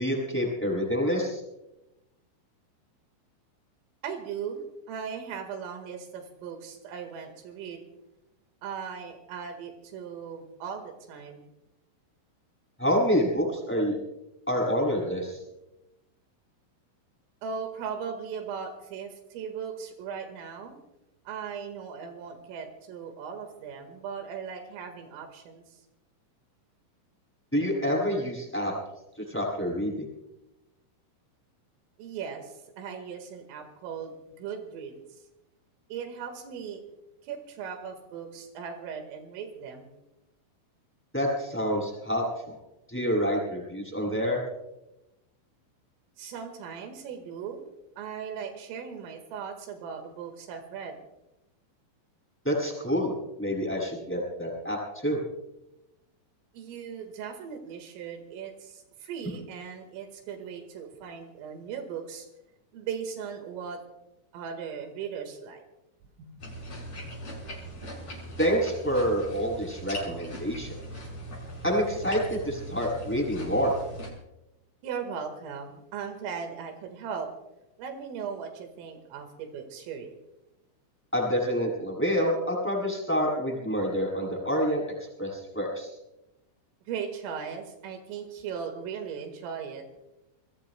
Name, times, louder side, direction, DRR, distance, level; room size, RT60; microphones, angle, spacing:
voice 1, 0.0-1.4 12.8-14.0 14.5-15.4 27.5-28.7 29.2-30.1 41.1-42.6 42.9-44.4 52.4-53.1 53.4-55.2 68.4-70.8 71.6-73.7 81.1-84.8 85.2-85.9, equal, ahead, -3 dB, 7.0 m, -27 dB
voice 2, 4.0-4.6 4.9-7.8 8.6-11.5 17.4-20.8 21.3-25.8 32.0-35.2 35.9-36.8 37.2-40.0 46.2-47.6 48.0-51.0 56.5-62.3 62.7-63.8 64.3-65.6 66.2-66.4 67.2-67.6 74.8-77.3 77.8-80.1 86.9-89.9, right 7 dB, 85° right, 5 dB, 4.4 m, -38 dB
sound 1, 66.4-74.1, right 1 dB, 30° left, 6.9 m, -40 dB
28.0 x 22.0 x 2.3 m, 0.92 s
omnidirectional pair, 5.7 m